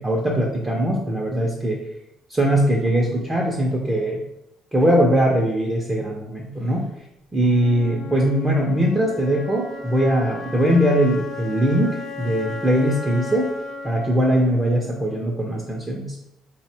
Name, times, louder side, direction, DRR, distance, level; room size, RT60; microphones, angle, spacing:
voice 1, 0.0-1.8 2.3-4.2 4.7-6.9 7.3-13.5 13.8-16.2, equal, 10° right, -2 dB, 0.4 m, -21 dB
Wind instrument woodwind instrument, 7.4-15.5, left 4 dB, 45° left, 0.4 m, -36 dB
3.9 x 2.0 x 4.3 m, 0.87 s
cardioid pair, 155°, 0 cm